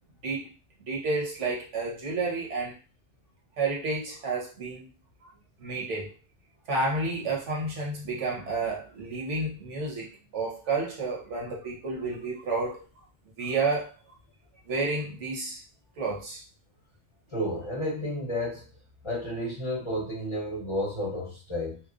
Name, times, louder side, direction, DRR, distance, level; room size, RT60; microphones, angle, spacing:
voice 1, 0.8-2.8 3.6-4.8 5.2-5.3 5.6-6.1 6.7-12.8 13.4-13.9 14.7-15.6 16.0-16.4, right 3 dB, 75° right, -2 dB, 1.2 m, -30 dB
voice 2, 17.3-18.7 19.0-21.8, equal, 30° left, -6 dB, 0.7 m, -31 dB
2.9 x 2.0 x 2.4 m, 0.32 s
omnidirectional pair, 1.2 m